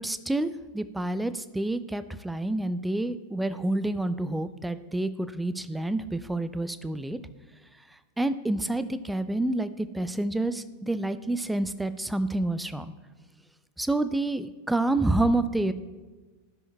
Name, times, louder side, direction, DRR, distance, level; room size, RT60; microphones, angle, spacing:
voice 1, 0.0-7.2 8.2-12.9 13.8-15.7, right 2 dB, 5° right, 13 dB, 0.4 m, -28 dB
12.5 x 6.2 x 2.3 m, 1.3 s
figure-of-eight pair, 90°, 0 cm